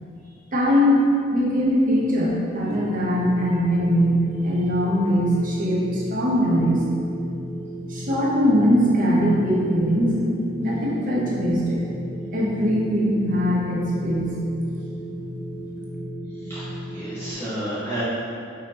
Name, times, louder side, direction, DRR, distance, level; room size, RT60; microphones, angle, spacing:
voice 1, 0.5-1.0 1.3-4.2 4.4-6.8 7.9-10.2 10.6-11.9 12.3-14.4, equal, 45° right, -4 dB, 0.7 m, -21 dB
sound 1, 2.7-17.3, right 1 dB, 15° right, 0.4 m, -34 dB
voice 2, 16.5-18.0, right 1 dB, 15° left, -13 dB, 1.2 m, -31 dB
4.7 x 3.3 x 2.9 m, 2.6 s
head